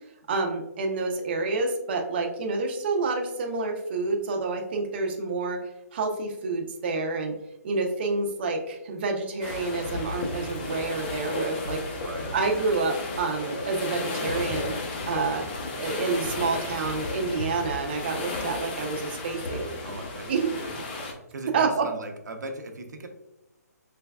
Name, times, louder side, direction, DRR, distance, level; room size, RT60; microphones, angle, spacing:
voice 1, 0.3-5.6 5.9-7.3 7.6-11.8 12.3-14.7 15.1-15.5 15.8-19.8 20.3-20.5 21.5-21.9, right 3 dB, 35° right, 2 dB, 0.4 m, -28 dB
sound 1, 9.4-21.1, left 2 dB, 30° left, 0.5 m, -33 dB
voice 2, 12.0-12.3 19.8-20.8 21.3-23.1, right 2 dB, 90° right, 5 dB, 0.6 m, -38 dB
3.4 x 3.1 x 2.2 m, 0.91 s
hypercardioid pair, 165°, 9 cm